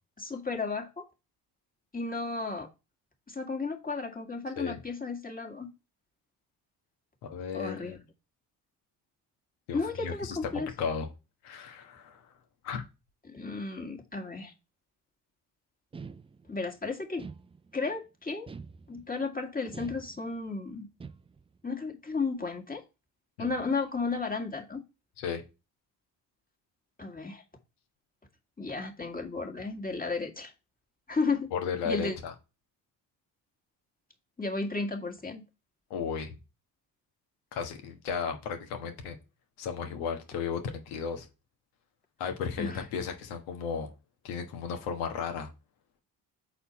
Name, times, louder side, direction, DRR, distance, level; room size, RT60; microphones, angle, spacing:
voice 1, 0.2-1.1 1.9-2.7 3.3-5.7 7.5-8.1 9.7-10.7 13.3-14.5 16.5-17.3 17.7-18.5 18.9-20.9 21.6-22.8 23.4-24.8 27.0-27.4 28.6-30.5 31.1-31.5 31.8-32.1 34.4-35.4 42.6-42.9, left 4 dB, 15° left, 1.8 m, -33 dB
voice 2, 7.2-8.0 9.7-11.1 11.4-12.2 12.6-12.8 23.4-23.5 25.2-25.4 31.5-32.3 35.9-36.4 37.5-39.2 39.6-41.3 42.2-43.9 44.2-45.5, left 6 dB, 80° left, 1.4 m, -34 dB
sound 1, 15.9-16.7 17.2-17.9 18.5-19.2 19.7-20.5 21.0-21.6, right 5 dB, 15° right, 0.4 m, -46 dB
6.7 x 4.3 x 4.2 m
hypercardioid pair, 55°, 49 cm